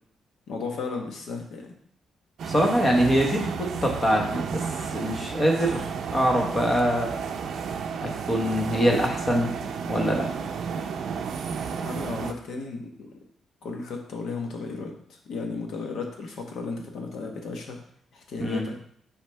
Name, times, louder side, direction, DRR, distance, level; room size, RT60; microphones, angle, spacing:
voice 1, 0.5-1.7 11.8-13.1 13.6-17.8 18.1-18.8, left 4 dB, 65° left, 2 dB, 1.2 m, -34 dB
voice 2, 2.4-4.6 4.9-5.8 6.1-7.1 8.0-9.5 9.9-10.3 18.4-18.7, equal, 20° left, 1 dB, 1.1 m, -23 dB
sound 1, 2.4-12.3, right 6 dB, 60° right, 0.5 m, -32 dB
6.3 x 5.0 x 3.4 m, 0.65 s
cardioid pair, 170°, 0 cm